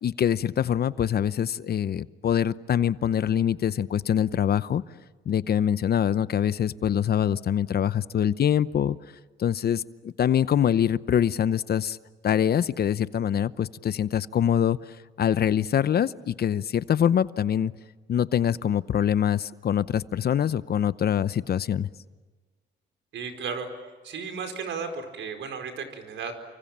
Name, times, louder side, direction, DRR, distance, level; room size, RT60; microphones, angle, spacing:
voice 1, 0.0-4.8 5.3-9.0 9.4-12.0 12.2-14.8 15.2-17.7 18.1-21.9, left 9 dB, 55° left, 16 dB, 0.8 m, -24 dB
voice 2, 23.1-23.7 24.0-26.3, right 5 dB, 75° right, 6 dB, 4.9 m, -34 dB
29.5 x 25.0 x 7.5 m, 1.4 s
cardioid pair, 90°, 20 cm